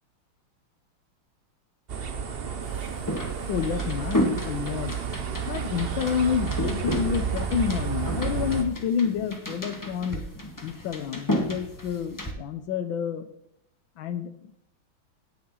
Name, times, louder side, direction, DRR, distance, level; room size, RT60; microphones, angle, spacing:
sound 1, 1.9-8.6, right 6 dB, 55° right, 0.6 m, -31 dB
sound 2, 2.6-12.3, equal, 10° left, 1.0 m, -33 dB
voice 1, 3.5-4.9 5.5-10.2 10.6-13.2 14.0-14.3, left 7 dB, 70° left, 10 dB, 1.6 m, -29 dB
16.5 x 7.0 x 4.0 m, 0.78 s
omnidirectional pair, 2.4 m